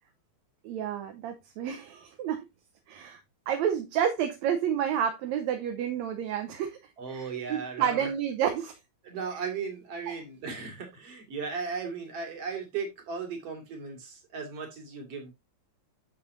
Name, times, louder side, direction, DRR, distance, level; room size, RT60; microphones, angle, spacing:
voice 1, 0.6-2.5 2.9-3.2 3.5-6.8 7.1-8.7 10.1-10.2, right 9 dB, 75° right, 2.1 m, -30 dB
voice 2, 7.0-8.1 9.0-15.3, right 5 dB, 55° right, 3.3 m, -36 dB
9.7 x 7.1 x 2.6 m
omnidirectional pair, 3.3 m